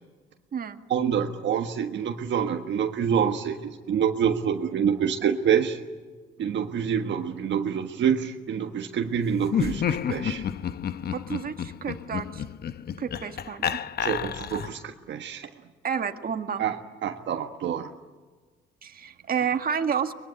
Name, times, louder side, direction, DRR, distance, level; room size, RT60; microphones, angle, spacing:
voice 1, 0.9-5.8 6.4-10.4 14.0-15.5 16.6-17.9, right 8 dB, 65° right, 4 dB, 1.5 m, -27 dB
Laughter, 9.4-14.9, left 8 dB, 50° left, 0.9 m, -30 dB
voice 2, 11.1-12.4 13.0-13.8 15.8-16.6 18.8-20.1, right 7 dB, 50° right, 6 dB, 1.9 m, -30 dB
24.0 x 21.5 x 9.9 m, 1.4 s
cardioid pair, 90°, 20 cm